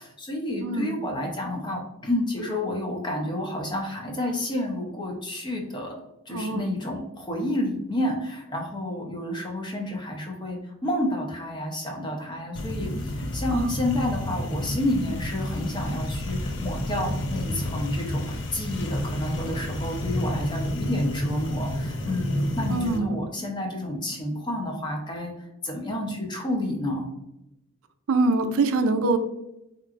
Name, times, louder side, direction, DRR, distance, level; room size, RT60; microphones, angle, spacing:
voice 1, 0.0-5.9 6.3-25.3 25.6-27.1, left 1 dB, 20° left, 0 dB, 0.7 m, -30 dB
voice 2, 6.3-6.7 13.5-13.7 22.7-23.2 28.1-29.2, right 3 dB, 85° right, 9 dB, 0.4 m, -24 dB
sound 1, 12.6-23.0, left 1 dB, 60° left, 0.6 m, -30 dB
4.6 x 2.9 x 2.4 m, 0.88 s
head